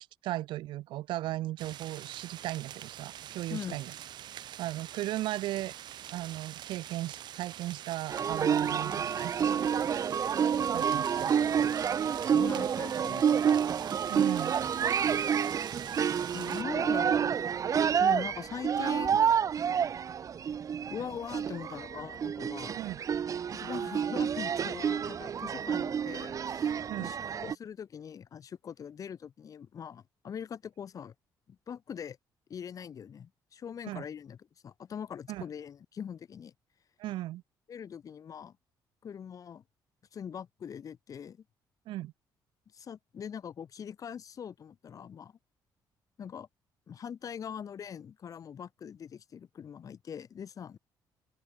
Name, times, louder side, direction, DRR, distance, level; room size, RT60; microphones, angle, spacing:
voice 1, 0.0-3.9 4.3-5.7 6.1-10.1 10.7-11.6 14.1-14.5 22.7-23.0 26.9-27.1 33.9-34.0 35.3-35.4 37.0-37.4 41.9-42.1, right 15 dB, 85° right, 2.6 m, -37 dB
sound 1, 1.6-16.6, right 11 dB, 65° right, 2.3 m, -45 dB
sound 2, 8.1-27.5, right 7 dB, 45° right, 1.8 m, -29 dB
voice 2, 12.3-13.6 16.3-19.2 20.9-22.8 23.5-31.1 31.5-32.2 32.5-34.4 34.6-36.5 37.7-38.6 39.0-39.6 40.1-41.4 42.7-45.3 46.2-46.5 46.9-50.8, left 8 dB, 45° left, 3.9 m, -42 dB
open air
cardioid pair, 120°, 8 cm